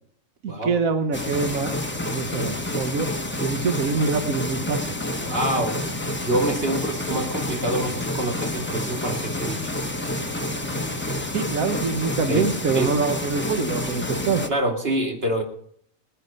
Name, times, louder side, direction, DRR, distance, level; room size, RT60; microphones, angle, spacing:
voice 1, 0.4-1.7 2.0-3.1 3.4-4.9 5.5-5.6 11.3-14.4, right 4 dB, 85° right, 7 dB, 1.4 m, -25 dB
sound 1, 1.1-14.5, left 1 dB, 10° left, 0.9 m, -29 dB
voice 2, 5.2-5.8 6.2-9.8 12.3-12.5 12.7-12.9 14.5-15.4, right 1 dB, 45° right, 1 dB, 2.7 m, -26 dB
19.0 x 10.0 x 5.5 m, 0.65 s
omnidirectional pair, 1.4 m